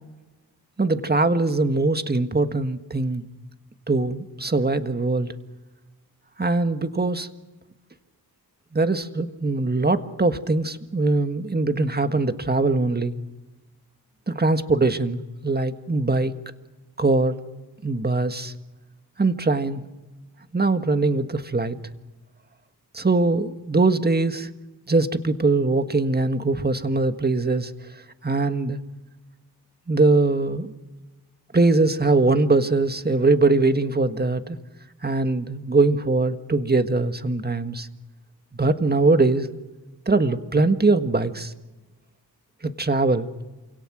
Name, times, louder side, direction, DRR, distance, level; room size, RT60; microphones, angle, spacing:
voice 1, 0.8-3.2 3.9-5.3 6.4-7.3 8.7-13.1 14.3-16.3 17.0-17.4 17.8-18.5 19.2-19.8 20.5-21.8 22.9-24.5 24.9-27.7 28.2-28.8 29.9-30.7 31.5-34.6 35.0-37.9 38.6-39.5 40.1-41.5 42.6-43.3, right 3 dB, 25° right, 9 dB, 1.6 m, -22 dB
27.5 x 17.5 x 6.2 m, 1.1 s
cardioid pair, 60°, 40 cm